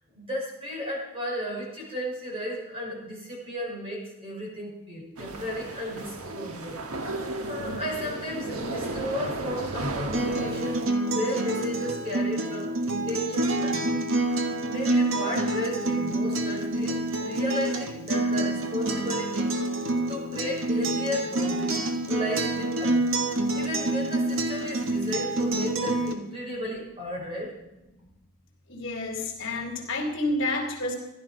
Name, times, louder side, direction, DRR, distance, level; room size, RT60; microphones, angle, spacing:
voice 1, 0.1-10.8 11.0-19.8 20.1-21.8 22.1-27.6, left 1 dB, 25° right, -3 dB, 5.5 m, -34 dB
sound 1, 5.2-10.9, right 2 dB, 85° right, 1.5 m, -34 dB
Acoustic guitar, 10.1-26.1, right 2 dB, 70° right, 1.6 m, -27 dB
voice 2, 28.7-30.9, left 2 dB, 60° left, 1 dB, 3.2 m, -29 dB
15.5 x 12.0 x 5.2 m, 0.95 s
head